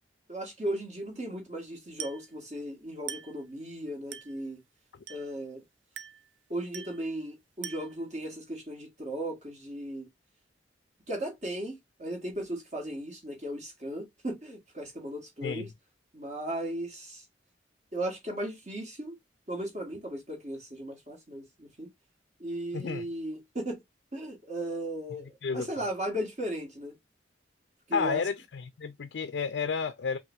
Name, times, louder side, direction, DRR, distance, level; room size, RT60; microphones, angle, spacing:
voice 1, 0.3-4.6 5.1-5.6 6.5-10.1 11.1-15.7 16.1-17.2 17.9-19.2 19.5-21.9 22.4-23.8 24.1-26.9 27.9-28.2, right 1 dB, 40° right, 1.9 m, -36 dB
Glass, 2.0-2.3 3.1-3.4 4.1-4.4 5.1-5.4 6.0-6.3 6.7-7.1 7.6-8.0, right 8 dB, 90° right, 0.6 m, -42 dB
voice 2, 22.7-23.1 25.4-25.9 27.9-30.2, left 5 dB, 65° left, 0.4 m, -31 dB
5.4 x 2.5 x 2.6 m
head